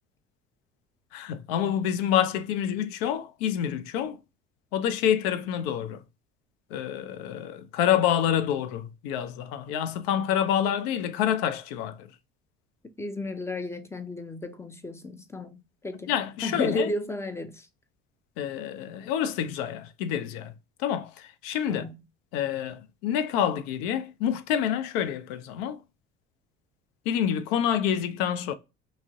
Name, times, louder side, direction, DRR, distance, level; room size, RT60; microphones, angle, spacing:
voice 1, 1.1-4.2 4.7-6.0 6.7-12.1 16.1-16.9 18.4-20.5 20.8-21.9 22.3-25.8 27.1-28.5, left 9 dB, 75° left, 0.4 m, -27 dB
voice 2, 13.0-16.1 16.4-17.7 21.7-22.0, left 2 dB, 10° left, 0.4 m, -33 dB
2.5 x 2.0 x 3.4 m
hypercardioid pair, 70°, 31 cm